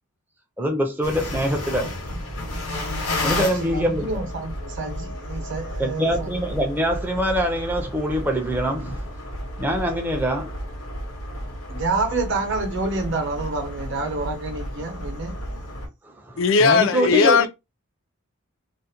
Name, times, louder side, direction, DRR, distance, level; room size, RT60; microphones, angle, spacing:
voice 1, 0.6-2.0 3.2-4.1 5.8-9.1 9.6-10.5 16.0-17.5, equal, 10° right, 0.4 m, -24 dB
sound 1, 1.0-15.9, left 1 dB, 85° left, 1.0 m, -32 dB
voice 2, 3.6-6.4 11.7-15.4, right 3 dB, 55° right, 0.8 m, -28 dB
voice 3, 16.4-17.5, left 5 dB, 60° left, 0.3 m, -17 dB
2.5 x 2.1 x 2.7 m
head